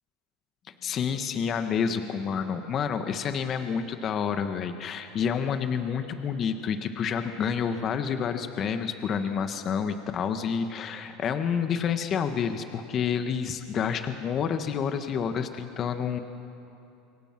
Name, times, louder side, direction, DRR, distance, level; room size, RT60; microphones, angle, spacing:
voice 1, 0.8-16.2, left 7 dB, 40° left, 8 dB, 1.4 m, -29 dB
27.5 x 23.5 x 6.0 m, 2.8 s
supercardioid pair, 100°, 0 cm